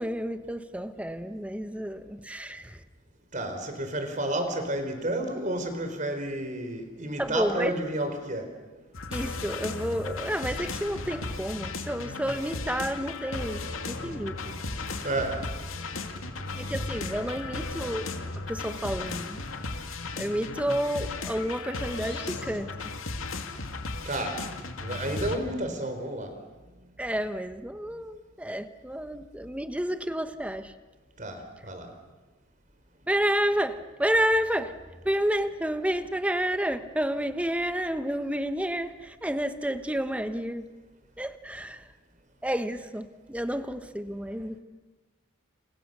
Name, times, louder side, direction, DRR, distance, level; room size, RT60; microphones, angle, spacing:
voice 1, 0.0-2.8 7.2-7.8 9.1-14.6 16.5-18.1 18.4-19.4 20.2-22.9 27.0-30.7 33.1-34.8 35.0-40.6 41.2-41.9 42.4-44.6, equal, 5° right, 1.1 m, -30 dB
voice 2, 3.3-8.5 13.9-14.1 14.7-16.0 16.4-16.5 24.0-24.4 24.8-26.3 31.2-31.9, right 1 dB, 35° right, 4.2 m, -31 dB
sound 1, 8.9-25.4, left 3 dB, 85° left, 2.5 m, -36 dB
sound 2, 10.5-22.4, left 1 dB, 55° left, 6.2 m, -47 dB
29.5 x 29.5 x 6.8 m
head